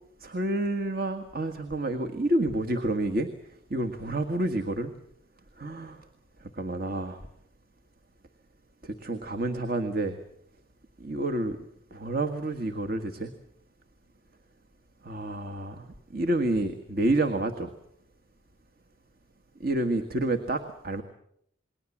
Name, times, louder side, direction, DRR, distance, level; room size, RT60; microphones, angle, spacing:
voice 1, 0.2-3.3 3.7-4.9 5.6-6.0 6.6-7.2 8.8-10.2 11.0-11.6 11.9-13.3 15.0-17.7 19.6-21.0, right 1 dB, 50° right, 5 dB, 1.6 m, -29 dB
28.5 x 21.5 x 7.3 m, 0.71 s
head